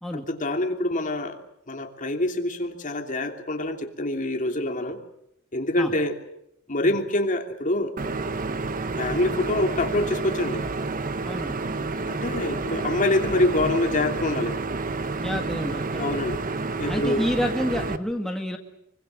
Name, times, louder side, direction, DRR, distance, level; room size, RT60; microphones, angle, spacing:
voice 1, 0.1-1.4 1.7-5.0 5.5-6.2 6.7-7.9 9.0-10.6 12.1-14.6 16.0-16.4 16.8-17.2, left 1 dB, 40° left, 4 dB, 3.0 m, -25 dB
sound 1, 8.0-18.0, right 3 dB, 40° right, 1.2 m, -29 dB
voice 2, 11.2-11.5 15.2-16.1 16.8-18.6, equal, ahead, 2 dB, 1.9 m, -29 dB
25.5 x 24.5 x 7.6 m, 0.77 s
head